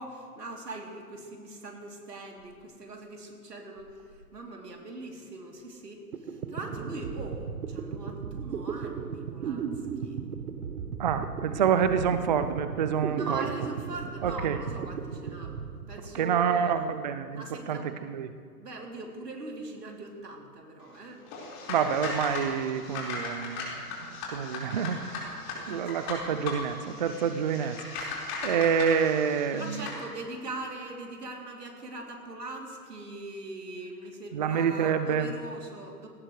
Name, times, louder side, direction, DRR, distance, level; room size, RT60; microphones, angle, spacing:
voice 1, 0.0-3.9 4.3-10.2 13.1-15.6 15.9-16.9 17.3-17.9 18.6-21.2 25.8-25.9 29.5-36.1, right 2 dB, 85° right, 0 dB, 3.2 m, -41 dB
sound 1, 5.8-5.9 6.1-16.6, right 6 dB, 70° right, 1.2 m, -36 dB
voice 2, 11.0-13.5 14.2-14.6 16.1-18.3 21.7-23.6 24.0-29.8 34.3-35.3, right 7 dB, 30° right, 10 dB, 0.4 m, -28 dB
sound 2, 21.3-30.0, left 3 dB, 30° left, 4.7 m, -37 dB
20.5 x 18.0 x 3.2 m, 2.1 s
hypercardioid pair, 130°, 47 cm